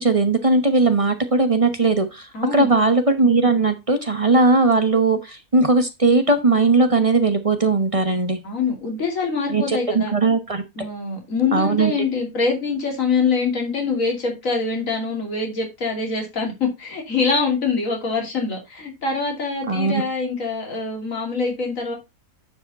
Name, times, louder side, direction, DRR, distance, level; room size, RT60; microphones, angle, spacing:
voice 1, 0.0-8.4 9.5-10.6 11.5-11.9 19.7-20.0, right 3 dB, 25° right, 0.8 m, -18 dB
voice 2, 2.3-2.7 8.4-10.1 10.8-21.9, left 4 dB, 60° left, 3.0 m, -24 dB
9.6 x 4.9 x 4.1 m
omnidirectional pair, 1.6 m